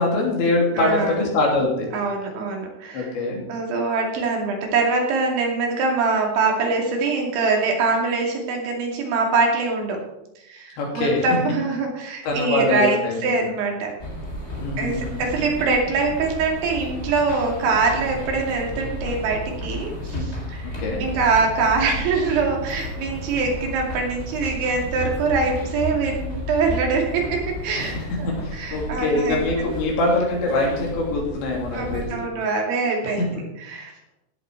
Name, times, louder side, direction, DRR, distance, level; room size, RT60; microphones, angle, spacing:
voice 1, 0.0-1.9 2.9-3.4 10.8-11.3 12.2-13.6 14.6-15.4 20.0-21.1 27.8-32.3 33.0-33.3, left 2 dB, 75° left, -1 dB, 5.2 m, -24 dB
voice 2, 0.8-1.2 1.9-3.1 3.5-10.0 10.5-13.9 14.8-19.9 20.2-27.9 28.5-29.4 31.7-33.2 33.7-33.9, right 4 dB, 80° right, 0 dB, 4.9 m, -23 dB
sound 1, 14.0-32.0, left 1 dB, 15° left, 3.3 m, -33 dB
16.0 x 8.5 x 4.7 m, 0.87 s
omnidirectional pair, 5.2 m